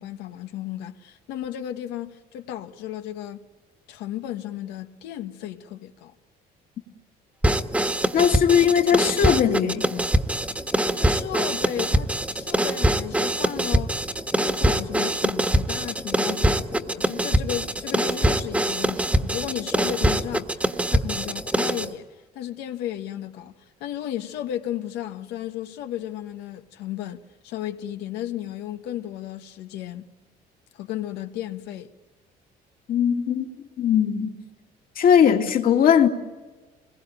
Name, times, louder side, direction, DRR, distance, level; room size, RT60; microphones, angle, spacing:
voice 1, 0.0-3.4 3.9-6.1 10.9-14.0 14.4-22.1 22.3-23.5 23.8-30.1 30.7-31.9, left 12 dB, 90° left, 1.5 m, -34 dB
sound 1, 7.4-21.9, right 1 dB, 10° right, 1.5 m, -24 dB
voice 2, 8.1-10.0 32.9-34.3 35.0-36.1, left 8 dB, 60° left, 2.6 m, -19 dB
27.5 x 21.5 x 9.0 m
cardioid pair, 110°, 17 cm